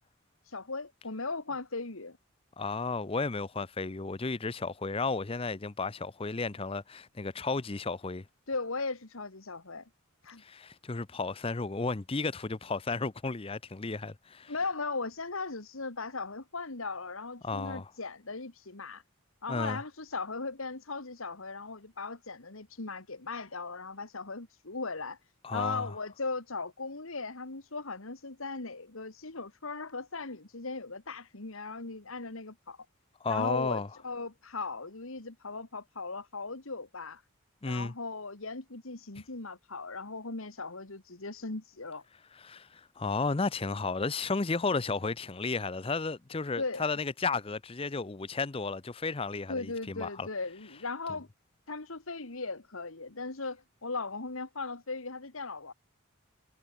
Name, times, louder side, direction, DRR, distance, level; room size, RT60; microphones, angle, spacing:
voice 1, 0.4-2.2 8.5-9.9 10.2-10.4 14.5-19.0 19.4-25.2 25.5-32.8 33.3-37.2 37.6-42.0 46.6-46.8 49.5-51.3 51.7-55.7, left 3 dB, 70° left, 2.0 m, -38 dB
voice 2, 2.6-8.2 10.4-14.5 17.4-17.9 19.5-19.8 25.4-25.9 33.2-33.9 37.6-37.9 42.4-50.3, left 4 dB, 25° left, 0.6 m, -33 dB
head